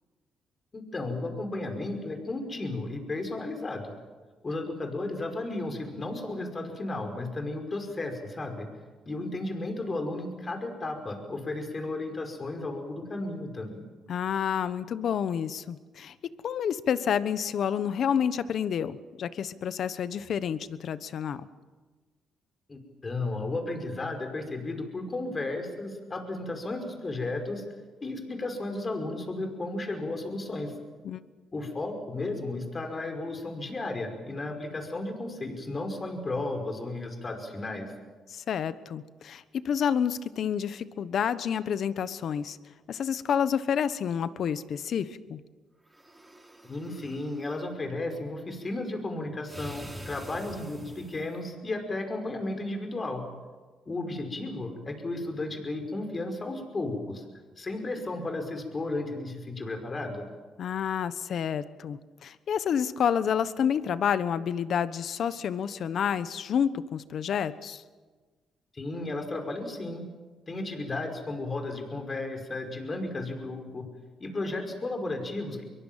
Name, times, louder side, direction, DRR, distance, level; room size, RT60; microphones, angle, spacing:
voice 1, 0.7-3.9 4.4-8.7 9.1-13.8 22.7-27.6 28.0-30.7 31.5-37.9 46.6-53.2 53.9-57.2 57.6-60.3 68.7-70.1 70.5-73.9 74.2-75.6, left 2 dB, 30° left, 5 dB, 5.4 m, -34 dB
voice 2, 14.1-16.1 16.4-21.5 31.0-31.2 38.3-42.6 42.9-45.4 60.6-67.8, left 8 dB, 65° left, 14 dB, 1.2 m, -29 dB
sound 1, 45.9-47.6 49.5-51.4, right 1 dB, 10° right, 5.6 m, -45 dB
23.5 x 22.5 x 7.5 m, 1.4 s
cardioid pair, 90°, 0 cm